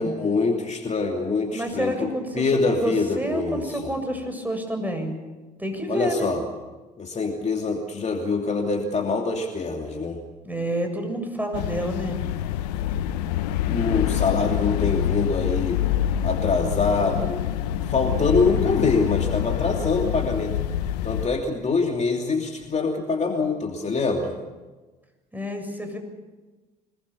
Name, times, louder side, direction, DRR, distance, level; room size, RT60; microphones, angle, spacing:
voice 1, 0.0-3.9 5.9-6.4 7.0-10.2 13.7-15.8 16.2-17.4 17.8-20.6 21.0-24.4, left 4 dB, 35° left, 2 dB, 2.9 m, -25 dB
voice 2, 1.5-5.1 5.6-6.3 10.5-12.2 25.3-26.0, equal, 10° right, 5 dB, 7.3 m, -29 dB
sound 1, 11.5-21.3, left 11 dB, 80° left, 0.9 m, -26 dB
26.0 x 20.5 x 7.1 m, 1.2 s
hypercardioid pair, 60°, 21 cm